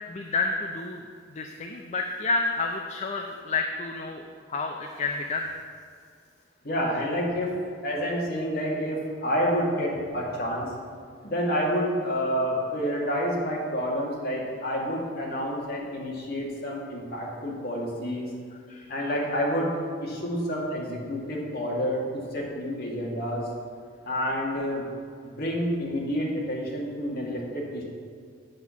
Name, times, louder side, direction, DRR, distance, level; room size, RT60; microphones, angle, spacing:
voice 1, 0.1-1.0 1.3-4.2 4.5-5.5 18.7-18.9, left 3 dB, 35° left, 3 dB, 0.5 m, -29 dB
voice 2, 6.6-7.6 7.8-10.7 11.2-18.3 18.9-23.5 24.1-24.9 25.4-27.8, equal, 55° left, -3 dB, 2.0 m, -29 dB
7.7 x 6.1 x 7.0 m, 2.1 s
head